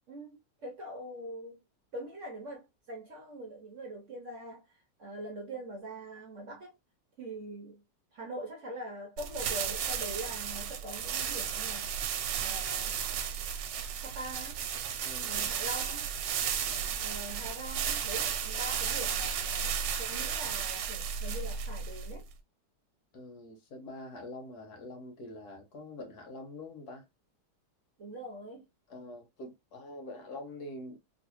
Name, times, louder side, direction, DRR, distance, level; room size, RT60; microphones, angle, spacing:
voice 1, 0.1-1.6 1.9-6.7 7.2-7.8 8.1-11.9 12.4-13.0 14.0-14.6 15.2-16.1 17.0-22.3 28.0-28.7, right 1 dB, 55° right, 0.9 m, -43 dB
sound 1, 9.2-22.3, right 8 dB, 90° right, 1.3 m, -34 dB
voice 2, 15.0-15.4 16.6-17.0 23.1-27.0 28.9-31.0, left 2 dB, 65° left, 1.4 m, -45 dB
3.1 x 2.7 x 2.9 m
omnidirectional pair, 1.9 m